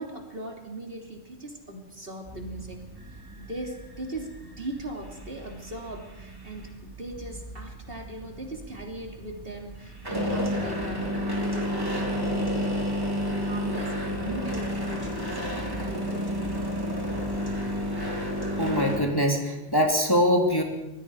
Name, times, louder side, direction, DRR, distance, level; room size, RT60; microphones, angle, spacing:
voice 1, 0.0-2.9 3.4-15.4 15.8-16.6, right 1 dB, 45° right, 1 dB, 3.5 m, -39 dB
sound 1, 2.3-19.0, equal, 15° right, 3.7 m, -32 dB
voice 2, 18.6-20.6, equal, 15° left, 0 dB, 3.0 m, -23 dB
26.5 x 20.0 x 4.9 m, 0.98 s
omnidirectional pair, 1.3 m